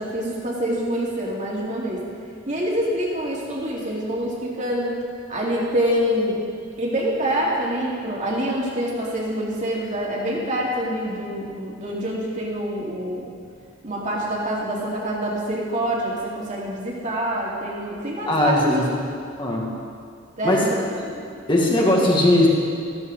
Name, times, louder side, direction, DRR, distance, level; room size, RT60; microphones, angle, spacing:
voice 1, 0.0-2.0 2.5-4.9 5.3-6.4 6.8-13.3 13.8-18.8 20.4-20.8, equal, 40° right, -4 dB, 2.7 m, -26 dB
voice 2, 18.3-18.9 19.4-19.7 20.4-20.9 21.5-22.5, left 1 dB, 25° left, -2 dB, 2.1 m, -19 dB
14.5 x 14.0 x 3.9 m, 2.3 s
head